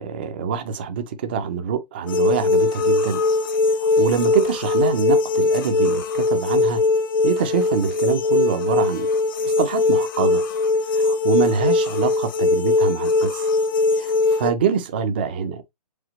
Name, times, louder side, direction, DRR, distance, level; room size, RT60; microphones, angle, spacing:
voice 1, 0.0-3.2 3.8-6.8 7.2-9.1 9.4-10.4 10.9-13.4 13.9-15.7, right 7 dB, 15° right, 0.3 m, -25 dB
sound 1, 2.1-14.5, left 3 dB, 30° left, 0.6 m, -20 dB
5.0 x 3.6 x 2.9 m
hypercardioid pair, 145°, 21 cm